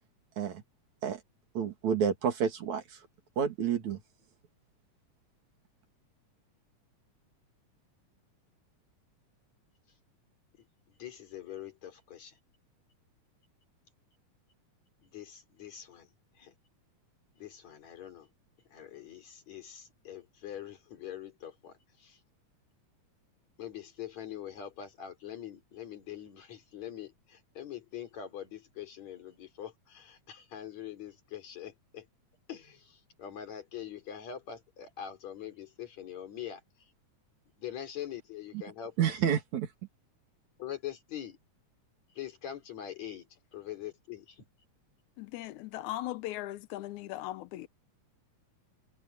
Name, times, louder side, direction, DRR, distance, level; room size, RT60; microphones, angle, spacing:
voice 1, 1.6-3.0 3.4-4.0 39.0-39.7, right 8 dB, 70° right, 3.6 m, -29 dB
voice 2, 10.6-12.4 15.0-16.5 17.4-18.3 18.7-22.2 23.6-32.1 32.5-36.9 37.6-39.2 40.6-41.4 42.1-44.4, left 10 dB, 65° left, 4.6 m, -44 dB
voice 3, 45.2-47.7, left 15 dB, 80° left, 2.1 m, -38 dB
omnidirectional pair, 3.4 m